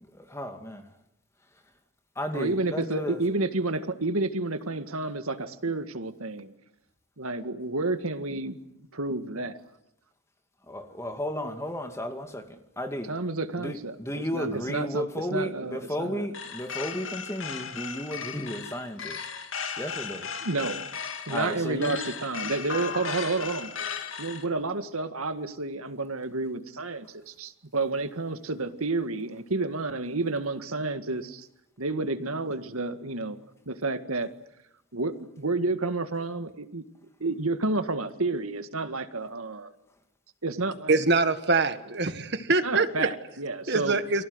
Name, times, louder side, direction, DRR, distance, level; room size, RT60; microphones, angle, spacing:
voice 1, 0.2-0.8 2.2-3.2 10.7-12.4 12.8-13.1 13.6-19.2 19.8-20.3 21.3-22.0, equal, 15° left, 6 dB, 2.3 m, -33 dB
voice 2, 2.3-6.5 7.2-8.6 8.9-9.6 13.0-16.3 20.4-20.8 21.3-23.7 24.2-31.5 31.8-33.4 33.7-34.3 34.9-36.8 37.2-39.7 40.4-41.0 42.6-44.0, right 3 dB, 85° right, 9 dB, 1.9 m, -30 dB
sound 1, 16.3-24.5, left 6 dB, 60° left, 2.5 m, -36 dB
voice 3, 40.9-42.9 43.7-44.2, right 3 dB, 50° right, 10 dB, 1.7 m, -24 dB
30.0 x 24.0 x 8.0 m, 0.80 s
head